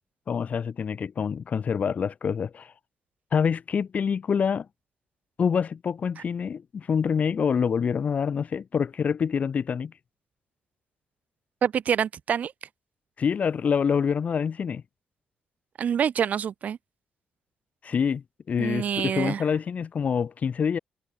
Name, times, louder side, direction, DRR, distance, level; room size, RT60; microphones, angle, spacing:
voice 1, 0.3-2.7 3.3-4.7 5.4-9.9 13.2-14.8 17.8-20.8, left 6 dB, 55° left, 1.1 m, -26 dB
voice 2, 11.6-12.5 15.8-16.8 18.6-19.4, right 8 dB, 60° right, 0.4 m, -26 dB
supercardioid pair, 55°, 3 cm